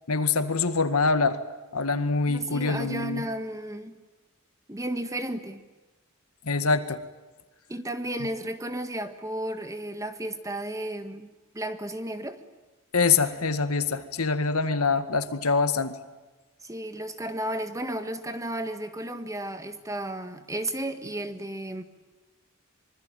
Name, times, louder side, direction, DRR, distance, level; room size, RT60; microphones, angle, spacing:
voice 1, 0.1-1.4 1.7-3.2 6.4-7.0 12.9-16.0, left 4 dB, 75° left, 10 dB, 1.9 m, -24 dB
voice 2, 2.3-3.9 4.7-5.6 7.7-11.3 11.5-12.4 16.6-21.8, right 1 dB, 15° right, 9 dB, 1.7 m, -33 dB
25.5 x 24.5 x 9.1 m, 1.2 s
head